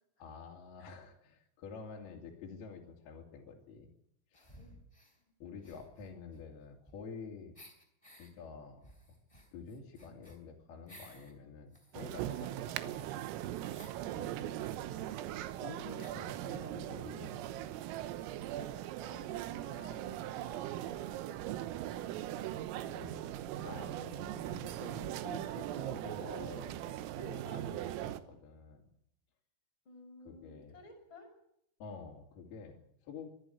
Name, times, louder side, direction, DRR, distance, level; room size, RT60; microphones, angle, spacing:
voice 1, 0.2-3.9 4.3-4.5 5.4-7.5 8.2-8.9 9.5-13.3 14.1-14.8 15.3-17.3 17.6-17.7 22.9-26.8 27.2-28.9 30.3-30.8 31.8-33.3, left 5 dB, 55° left, 0 dB, 4.3 m, -49 dB
sound 1, 4.3-5.2 5.6-7.2 7.5-8.3 8.8-11.3 11.7-14.0 14.9-15.0 15.2-15.3 16.0-16.4, equal, 10° left, 2.8 m, -58 dB
sound 2, 11.9-28.2, right 13 dB, 90° right, 3.7 m, -40 dB
voice 2, 14.2-15.1 16.9-17.1 19.0-22.5 29.8-31.3, left 1 dB, 25° left, 2 dB, 6.6 m, -56 dB
24.5 x 11.5 x 9.3 m, 0.75 s
omnidirectional pair, 5.9 m